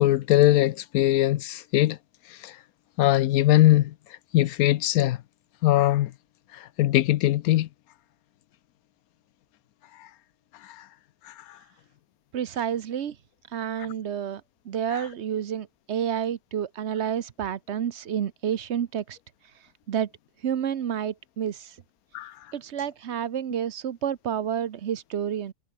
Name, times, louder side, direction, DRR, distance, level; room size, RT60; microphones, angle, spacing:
voice 1, 0.0-2.0 2.3-2.6 3.0-3.9 4.3-5.2 5.6-6.1 6.5-7.7 10.0-10.1 10.6-10.9 11.2-11.6 22.1-22.4, left 14 dB, 80° left, 1.1 m, -21 dB
voice 2, 12.3-13.2 13.5-19.2 19.9-20.1 20.4-21.8 22.5-25.5, right 9 dB, 55° right, 1.0 m, -29 dB
omnidirectional pair, 1.5 m